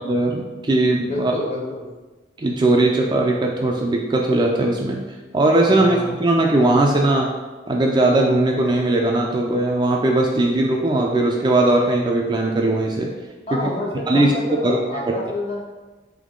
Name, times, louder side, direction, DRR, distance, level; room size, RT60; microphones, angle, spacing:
voice 1, 0.0-1.3 2.4-5.0 5.3-7.3 7.7-13.1 13.5-13.7 14.1-14.3 14.6-14.8, right 2 dB, 25° right, 0 dB, 0.3 m, -19 dB
voice 2, 1.1-1.9 5.6-6.1 13.5-15.6, left 1 dB, 35° left, -2 dB, 0.8 m, -28 dB
3.6 x 3.1 x 3.7 m, 1.2 s
head